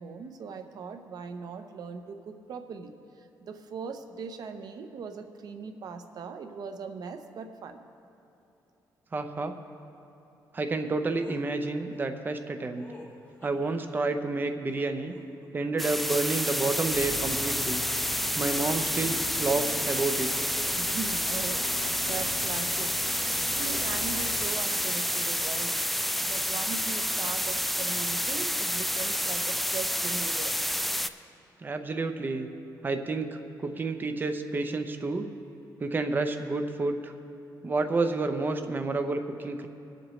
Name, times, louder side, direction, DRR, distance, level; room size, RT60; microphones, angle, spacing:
voice 1, 0.0-7.8 20.7-21.7 22.0-23.0 23.6-25.8 26.2-30.5, right 5 dB, 65° right, 7 dB, 0.8 m, -40 dB
voice 2, 9.1-9.5 10.5-12.8 13.4-15.2 15.5-17.8 18.4-20.3 31.6-32.5 32.8-35.3 35.8-37.1 37.6-39.7, right 3 dB, 25° right, 6 dB, 0.7 m, -30 dB
sound 1, 11.2-11.4 12.8-14.0 14.7-15.7 16.2-16.7, left 1 dB, 20° left, 1.8 m, -50 dB
sound 2, 15.8-31.1, equal, ahead, 0.3 m, -29 dB
sound 3, 16.9-24.5, left 6 dB, 55° left, 0.6 m, -42 dB
23.0 x 7.7 x 3.2 m, 2.9 s
cardioid pair, 120°, 7 cm